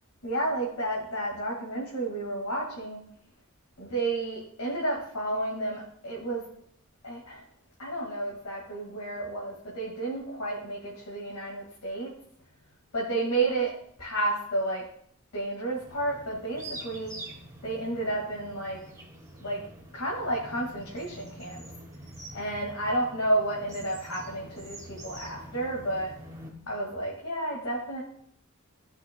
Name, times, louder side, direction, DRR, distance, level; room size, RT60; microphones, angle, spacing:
voice 1, 0.2-3.0 3.8-6.4 7.0-7.4 7.8-12.1 12.9-13.7 14.0-14.9 15.3-17.1 17.6-18.8 19.4-19.6 19.9-21.7 22.3-26.1 26.7-28.0, right 2 dB, 70° left, -4 dB, 2.0 m, -31 dB
sound 1, 15.7-26.5, right 1 dB, 15° right, 1.9 m, -45 dB
16.5 x 6.0 x 2.2 m, 0.67 s
head